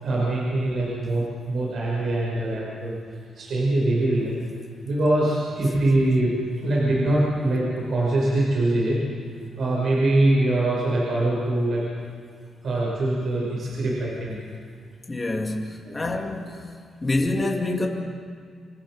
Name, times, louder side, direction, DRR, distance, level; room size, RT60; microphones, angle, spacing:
voice 1, 0.0-2.9 3.4-4.3 4.8-6.3 6.6-9.0 9.6-11.8 12.6-14.4 15.8-15.9, right 1 dB, 55° right, 6.4 m, -23 dB
voice 2, 15.1-16.6 17.0-17.9, left 2 dB, 20° left, 2.8 m, -26 dB
27.5 x 25.5 x 5.2 m
cardioid pair, 135°, 0 cm